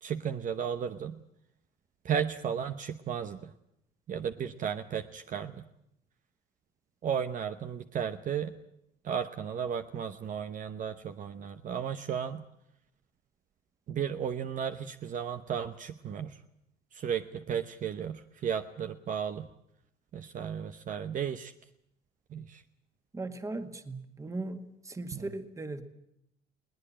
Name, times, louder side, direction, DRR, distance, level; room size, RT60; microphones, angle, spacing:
voice 1, 0.0-1.2 2.0-3.5 4.1-5.7 7.0-8.5 9.0-12.4 13.9-16.4 16.9-19.5 20.1-21.5 22.3-22.6 25.1-25.3, right 8 dB, 50° right, 8 dB, 1.0 m, -34 dB
voice 2, 23.1-25.8, right 2 dB, 20° right, 8 dB, 1.9 m, -38 dB
21.5 x 18.5 x 8.7 m, 0.78 s
cardioid pair, 110°, 17 cm